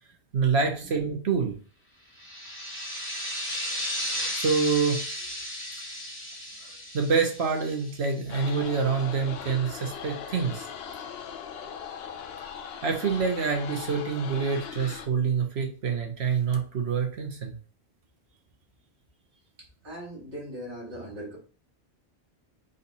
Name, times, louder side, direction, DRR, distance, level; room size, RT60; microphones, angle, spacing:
voice 1, 0.3-1.5 4.3-5.0 6.9-10.7 12.8-17.5, right 5 dB, 75° right, 3 dB, 1.2 m, -26 dB
sound 1, 2.2-8.5, equal, 15° left, 0.7 m, -35 dB
sound 2, 8.3-15.1, left 7 dB, 70° left, 0.8 m, -39 dB
voice 2, 19.6-21.4, equal, 55° right, -3 dB, 1.9 m, -40 dB
4.0 x 2.7 x 4.1 m, 0.37 s
omnidirectional pair, 1.1 m